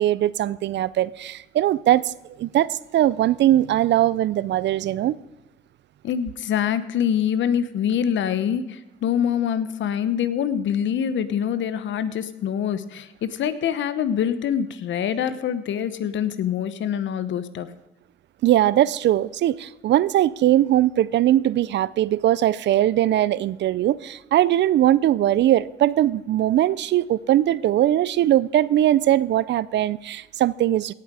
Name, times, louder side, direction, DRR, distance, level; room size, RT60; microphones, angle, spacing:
voice 1, 0.0-5.2 18.4-30.9, right 13 dB, 65° right, 0.5 m, -20 dB
voice 2, 6.0-17.7, left 9 dB, 70° left, 1.0 m, -25 dB
17.0 x 7.8 x 4.8 m
cardioid pair, 90°, 20 cm